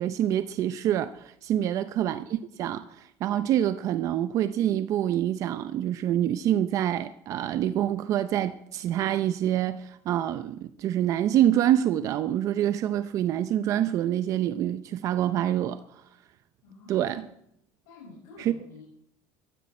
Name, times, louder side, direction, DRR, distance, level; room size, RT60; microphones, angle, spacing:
voice 1, 0.0-16.0 16.9-17.2 18.4-18.5, right 11 dB, 50° right, 0.6 m, -26 dB
voice 2, 16.6-17.3 17.8-18.8, left 3 dB, 80° left, 6.1 m, -48 dB
15.5 x 14.5 x 4.3 m
cardioid pair, 130°, 7 cm